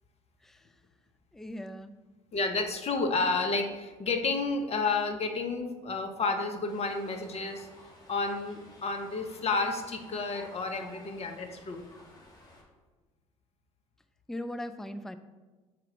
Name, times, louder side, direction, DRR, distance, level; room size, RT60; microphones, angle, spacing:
voice 1, 1.3-2.0 14.3-15.2, left 1 dB, ahead, 10 dB, 0.4 m, -39 dB
voice 2, 2.3-7.7 8.1-11.8, left 3 dB, 40° left, 5 dB, 0.9 m, -31 dB
sound 1, 6.7-12.6, left 1 dB, 25° left, 1.8 m, -54 dB
5.9 x 4.3 x 3.8 m, 1.2 s
hypercardioid pair, 55°, 17 cm